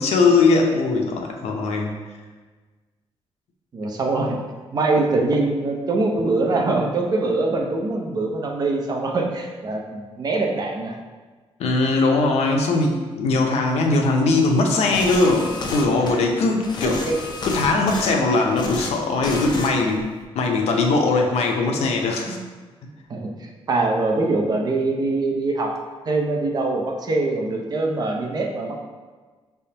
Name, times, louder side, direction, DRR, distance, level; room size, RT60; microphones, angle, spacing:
voice 1, 0.0-1.9 11.6-17.0 17.4-20.0 20.3-22.4, left 3 dB, 85° left, 2 dB, 0.6 m, -20 dB
voice 2, 3.7-4.4 4.7-11.0 16.8-17.2 22.2-22.4 23.1-25.7 26.1-28.8, right 2 dB, 40° right, 1 dB, 0.6 m, -23 dB
sound 1, 14.9-16.2 16.6-18.1 18.4-18.9 19.2-19.7 20.0-20.2, left 3 dB, 45° left, 0.5 m, -31 dB
5.2 x 3.4 x 2.8 m, 1.4 s
wide cardioid pair, 150°, 11 cm